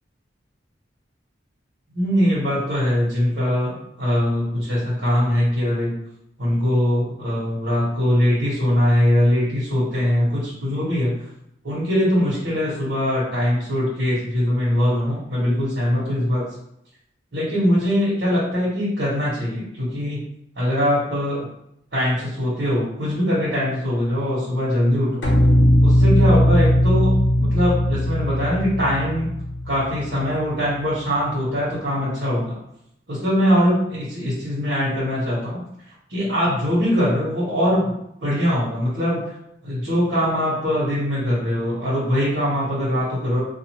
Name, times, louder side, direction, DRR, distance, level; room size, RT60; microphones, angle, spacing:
voice 1, 1.9-5.9 6.4-11.1 11.6-16.4 17.3-20.2 20.6-21.5 21.9-25.2 25.8-29.3 29.6-32.6 33.1-35.6 36.1-37.9 38.2-39.2 39.6-43.4, equal, 80° right, -9 dB, 1.2 m, -22 dB
sound 1, 25.2-30.5, left 1 dB, 80° left, 0.7 m, -18 dB
2.5 x 2.4 x 2.9 m, 0.76 s
head